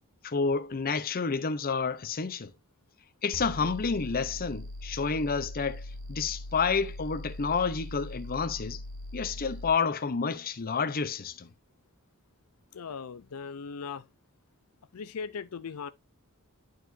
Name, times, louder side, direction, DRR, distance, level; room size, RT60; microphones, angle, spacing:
voice 1, 0.2-2.5 3.2-8.8 9.1-11.5, left 5 dB, 40° left, 0.7 m, -29 dB
sound 1, 3.3-9.7, left 1 dB, 75° right, 1.3 m, -41 dB
voice 2, 12.7-14.1 14.9-15.9, left 5 dB, 75° left, 0.5 m, -38 dB
11.0 x 4.7 x 2.6 m
head